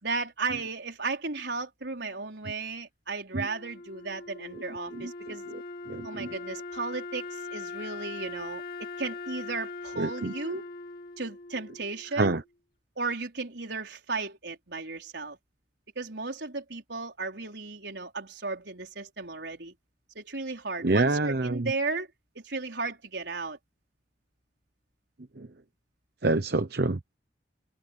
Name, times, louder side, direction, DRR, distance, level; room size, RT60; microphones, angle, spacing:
voice 1, 0.0-5.5 6.0-10.6 11.2-12.4 13.0-15.4 16.0-19.7 20.1-22.1 22.3-23.6, right 3 dB, 80° right, 4.6 m, -35 dB
Wind instrument woodwind instrument, 3.4-12.4, left 3 dB, 60° left, 2.8 m, -41 dB
voice 2, 4.9-6.3 10.0-10.3 12.1-12.4 20.8-21.7 25.4-25.5 26.2-27.1, right 2 dB, 65° right, 1.0 m, -28 dB
head